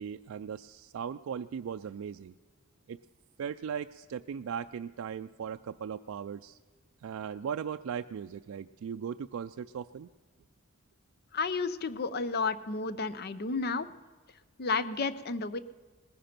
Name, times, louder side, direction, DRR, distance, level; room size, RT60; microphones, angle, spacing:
voice 1, 0.0-2.3 2.9-3.0 3.4-6.6 7.0-10.1, right 7 dB, 80° right, 8 dB, 0.3 m, -38 dB
voice 2, 11.3-13.9 14.6-15.6, left 4 dB, 50° left, 14 dB, 0.6 m, -32 dB
19.5 x 10.5 x 5.9 m, 1.5 s
head